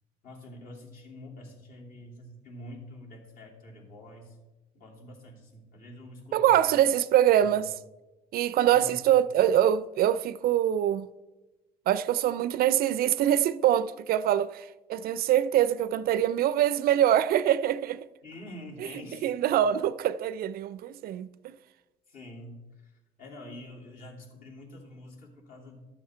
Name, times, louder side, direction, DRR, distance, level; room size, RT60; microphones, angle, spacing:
voice 1, 0.2-4.4 4.7-6.6 7.4-7.7 8.7-9.0 18.2-19.3 22.1-25.9, left 1 dB, 55° left, 3.0 m, -46 dB
voice 2, 6.3-7.7 8.3-11.1 11.9-18.1 19.2-21.5, right 11 dB, 65° right, 0.4 m, -24 dB
12.5 x 7.4 x 4.4 m
cardioid pair, 110°, 17 cm